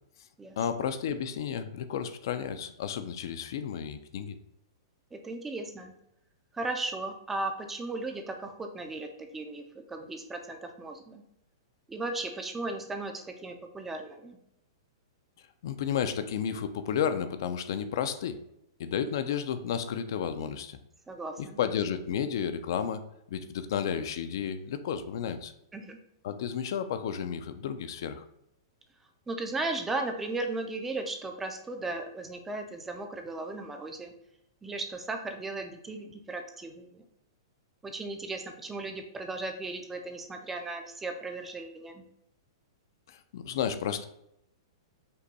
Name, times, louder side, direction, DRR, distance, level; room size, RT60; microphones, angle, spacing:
voice 1, 0.6-4.4 15.6-18.4 18.8-20.8 21.4-23.0 23.3-25.5 26.2-28.2 43.1-44.1, left 8 dB, 55° left, 10 dB, 0.4 m, -32 dB
voice 2, 5.1-5.9 6.5-9.6 9.9-11.2 11.9-14.4 21.1-21.6 25.7-26.0 29.3-34.1 34.6-37.0 37.8-42.0, right 2 dB, 10° right, 4 dB, 0.4 m, -36 dB
5.3 x 2.2 x 4.0 m, 0.80 s
hypercardioid pair, 165°, 2 cm